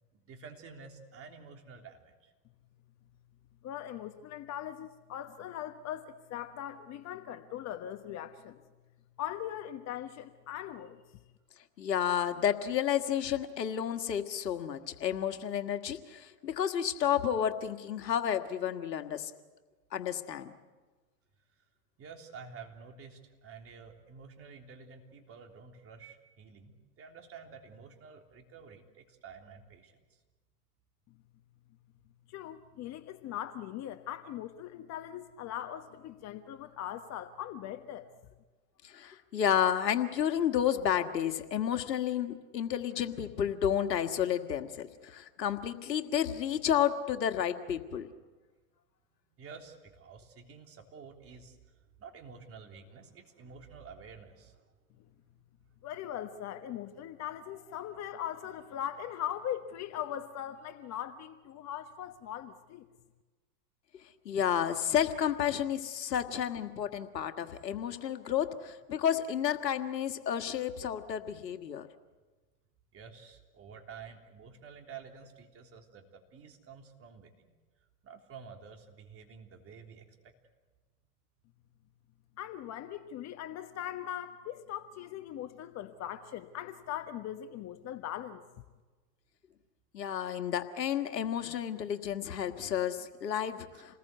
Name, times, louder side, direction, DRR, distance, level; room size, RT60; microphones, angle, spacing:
voice 1, 0.0-2.3 22.0-30.2 47.8-47.9 49.4-51.6 52.0-54.7 72.9-77.5 78.0-80.3 93.7-93.8, right 5 dB, 30° right, 3 dB, 3.5 m, -50 dB
voice 2, 3.6-8.6 9.2-11.2 32.3-38.1 55.8-62.8 82.4-88.4, left 11 dB, 35° left, 8 dB, 1.2 m, -40 dB
voice 3, 11.8-19.3 19.9-20.5 38.8-48.1 64.3-71.9 89.9-94.0, left 9 dB, 85° left, 7 dB, 1.8 m, -31 dB
28.5 x 20.5 x 8.2 m, 1.3 s
hypercardioid pair, 115°, 48 cm